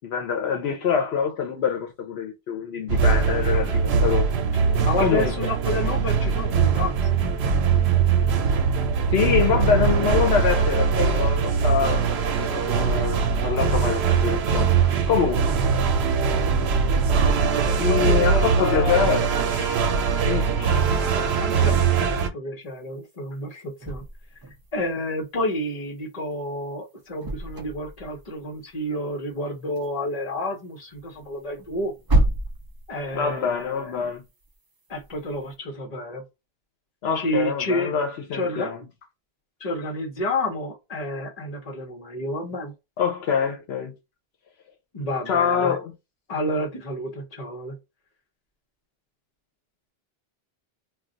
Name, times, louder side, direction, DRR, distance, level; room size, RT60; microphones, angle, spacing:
voice 1, 0.0-4.3 5.0-5.4 9.1-14.7 15.1-15.5 17.8-19.9 20.2-20.8 33.1-34.2 37.0-38.8 43.0-43.9 45.3-45.9, left 7 dB, 80° left, 0.9 m, -25 dB
sound 1, 2.9-22.3, right 5 dB, 90° right, 0.8 m, -21 dB
voice 2, 4.8-6.9 17.2-19.0 21.4-22.1 22.3-24.0 24.7-31.9 32.9-34.2 34.9-36.2 37.1-37.9 38.3-38.7 39.6-42.7 44.9-45.8 46.3-47.7, left 1 dB, 40° left, 1.0 m, -30 dB
sound 2, 22.7-22.8 23.8-26.4 26.8-29.4 29.7-29.9 30.1-34.6 34.9-35.6, right 2 dB, 40° right, 0.3 m, -30 dB
2.3 x 2.3 x 3.8 m
omnidirectional pair, 1.1 m